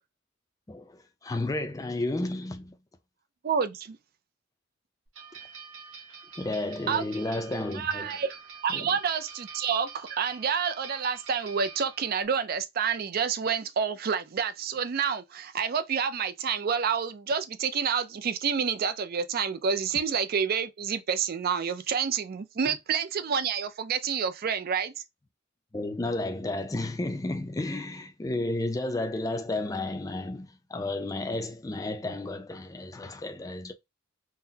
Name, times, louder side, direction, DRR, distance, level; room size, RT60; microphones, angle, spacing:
voice 1, 0.7-2.8 6.4-8.1 8.7-8.9 25.7-33.7, left 2 dB, 15° left, 0.4 m, -32 dB
voice 2, 3.4-4.0 6.9-7.0 7.7-8.4 8.6-24.9, right 6 dB, 50° right, 0.4 m, -28 dB
sound 1, 5.1-12.2, right 6 dB, 75° right, 1.1 m, -46 dB
3.9 x 2.0 x 2.7 m
head